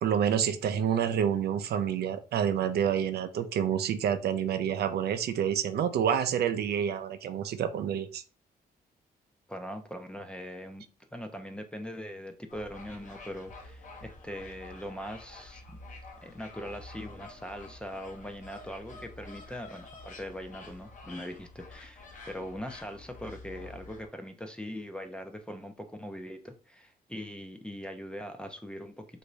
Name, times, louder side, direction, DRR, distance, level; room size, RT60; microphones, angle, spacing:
voice 1, 0.0-8.2, right 8 dB, 75° right, 0.5 m, -28 dB
voice 2, 9.5-10.8 11.1-15.8 16.2-29.2, equal, 5° left, 0.4 m, -41 dB
sound 1, 12.5-24.1, left 3 dB, 50° left, 0.8 m, -48 dB
3.4 x 2.6 x 3.1 m
cardioid pair, 140°, 17 cm